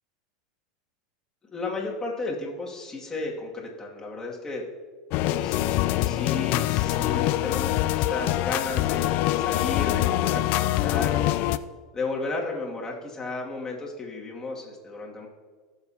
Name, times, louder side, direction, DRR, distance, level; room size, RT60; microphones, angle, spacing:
voice 1, 1.5-4.6 5.3-11.4 11.9-15.3, left 3 dB, 15° left, -3 dB, 2.2 m, -34 dB
sound 1, 5.1-11.6, left 15 dB, 55° left, 0.4 m, -24 dB
16.0 x 7.0 x 2.8 m, 1.4 s
hypercardioid pair, 110°, 3 cm